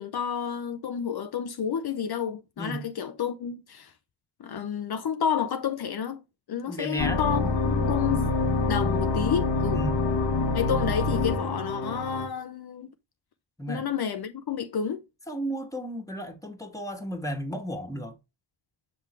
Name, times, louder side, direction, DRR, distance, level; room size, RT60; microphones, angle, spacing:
voice 1, 0.0-3.9 4.4-6.2 6.5-8.3 8.7-9.8 10.5-12.9 13.7-15.0, left 8 dB, 60° left, 0.7 m, -30 dB
voice 2, 6.7-7.5 9.7-10.0 13.6-13.9 15.3-18.1, right 1 dB, 10° left, 1.8 m, -33 dB
sound 1, 7.0-12.3, left 3 dB, 85° left, 1.3 m, -26 dB
6.4 x 3.8 x 4.4 m
cardioid pair, 55°, 42 cm